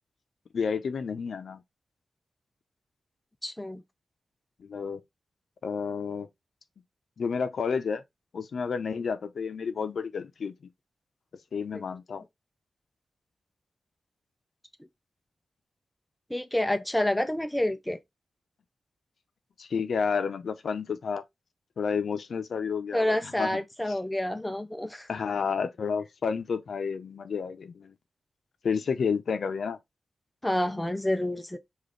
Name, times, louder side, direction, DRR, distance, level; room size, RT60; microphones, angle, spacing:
voice 1, 0.5-1.6 4.6-5.0 5.6-6.3 7.2-8.0 8.3-10.5 11.5-12.2 19.6-21.2 21.8-23.6 25.1-27.9 28.6-29.8, left 6 dB, 75° left, 0.6 m, -30 dB
voice 2, 3.4-3.8 11.7-11.8 16.3-18.0 22.9-25.1 30.4-31.6, left 1 dB, 5° left, 0.5 m, -28 dB
5.1 x 2.5 x 3.8 m
wide cardioid pair, 105°, 0 cm